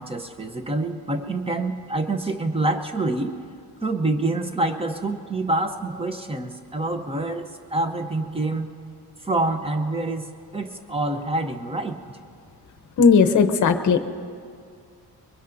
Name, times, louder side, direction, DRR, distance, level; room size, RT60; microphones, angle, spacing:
voice 1, 0.0-3.3 3.8-8.7 9.2-12.0, right 2 dB, 15° right, 6 dB, 0.7 m, -26 dB
voice 2, 13.0-14.0, left 5 dB, 45° left, 8 dB, 0.8 m, -16 dB
23.5 x 22.0 x 2.6 m, 2.3 s
wide cardioid pair, 170°, 40 cm